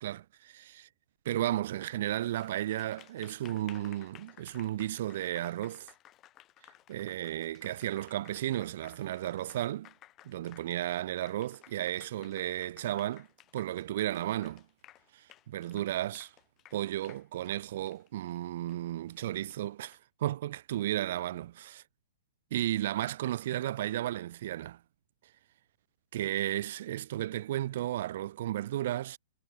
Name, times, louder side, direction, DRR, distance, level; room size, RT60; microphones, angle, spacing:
voice 1, 0.0-0.9 1.2-5.9 6.9-9.9 10.2-13.3 13.5-14.6 15.1-16.3 16.7-21.8 22.5-24.8 26.1-29.2, right 13 dB, 60° right, 0.5 m, -34 dB
Applause, 2.2-20.0, left 14 dB, 30° left, 3.0 m, -57 dB
hypercardioid pair, 130°, 0 cm